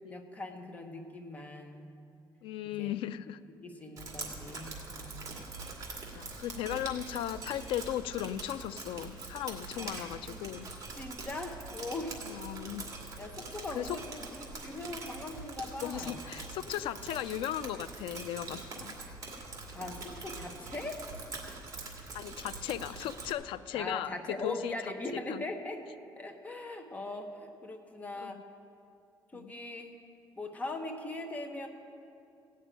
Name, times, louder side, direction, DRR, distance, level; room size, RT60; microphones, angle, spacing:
voice 1, 0.1-1.9 2.6-3.0 3.6-5.3 9.8-10.4 10.9-12.1 13.2-16.2 19.7-21.0 23.7-25.8 26.2-28.4 29.3-30.0 30.4-31.7, left 2 dB, 15° left, 4 dB, 0.9 m, -40 dB
voice 2, 2.4-3.4 6.1-10.7 12.3-12.9 13.8-14.0 15.8-19.0 22.1-24.8 25.1-25.4 28.2-28.4 29.3-29.5, left 12 dB, 90° left, 13 dB, 0.4 m, -37 dB
Drip, 4.0-23.3, right 3 dB, 40° right, 2.2 m, -44 dB
17.0 x 6.6 x 8.9 m, 2.6 s
cardioid pair, 170°, 9 cm